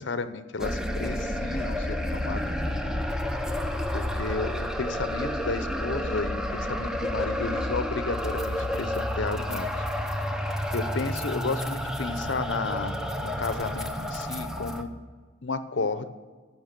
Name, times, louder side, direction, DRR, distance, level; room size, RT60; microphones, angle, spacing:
voice 1, 0.0-3.0 3.9-9.8 10.7-13.0 13.2-15.0 15.4-16.1, left 3 dB, 65° left, 12 dB, 0.7 m, -33 dB
sound 1, 0.6-14.8, left 1 dB, 5° right, 0.6 m, -30 dB
15.0 x 5.8 x 6.7 m, 1.4 s
head